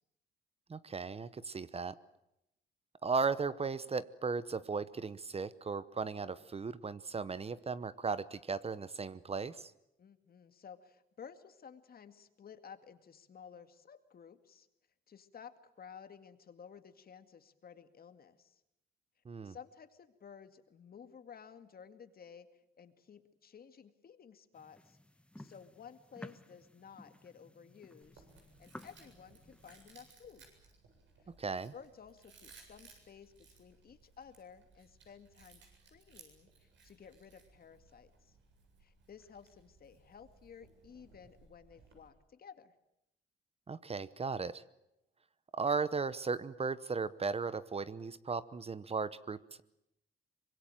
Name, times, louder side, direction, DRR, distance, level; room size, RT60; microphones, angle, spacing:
voice 1, 0.7-2.0 3.0-9.7 19.3-19.5 31.4-31.7 43.7-44.6 45.5-49.6, right 4 dB, 30° right, 16 dB, 0.9 m, -36 dB
voice 2, 10.0-14.7 15.1-15.5 15.8-18.6 19.4-25.0 25.4-28.3 28.6-30.5 31.7-35.6 35.9-38.4 38.8-42.7, left 7 dB, 50° left, 10 dB, 2.1 m, -54 dB
sound 1, 24.5-30.1, left 1 dB, 5° left, 1.3 m, -55 dB
Chewing mastication, 28.0-42.1, right 4 dB, 70° right, 7.8 m, -62 dB
24.5 x 22.0 x 9.1 m, 0.84 s
cardioid pair, 90°, 20 cm